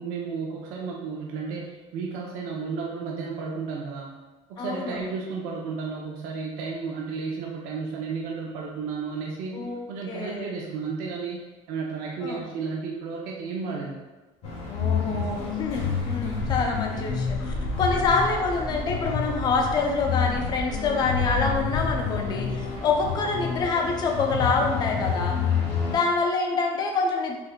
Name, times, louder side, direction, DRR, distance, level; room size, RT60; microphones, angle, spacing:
voice 1, 0.0-4.1 4.5-9.6 9.9-11.4 11.7-14.0, right 5 dB, 85° right, -2 dB, 0.5 m, -33 dB
voice 2, 4.6-5.0 9.5-9.8 10.1-10.5 12.2-12.4 14.7-25.4 25.9-27.4, left 4 dB, 30° left, 2 dB, 0.4 m, -26 dB
sound 1, 14.4-26.0, left 5 dB, 50° left, 0.8 m, -28 dB
3.5 x 3.2 x 2.2 m, 1.2 s
cardioid pair, 170°, 14 cm